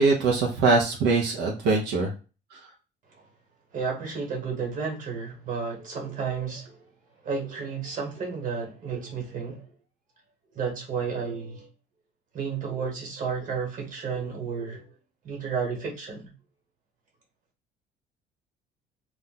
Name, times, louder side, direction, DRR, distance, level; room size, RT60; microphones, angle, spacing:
voice 1, 0.0-2.1, right 3 dB, 90° right, 0.7 m, -22 dB
voice 2, 3.7-6.8 7.2-9.6 10.5-11.7 12.3-14.9 15.2-16.3, right 5 dB, 50° right, 1.3 m, -32 dB
2.4 x 2.2 x 3.7 m
cardioid pair, 110°, 17 cm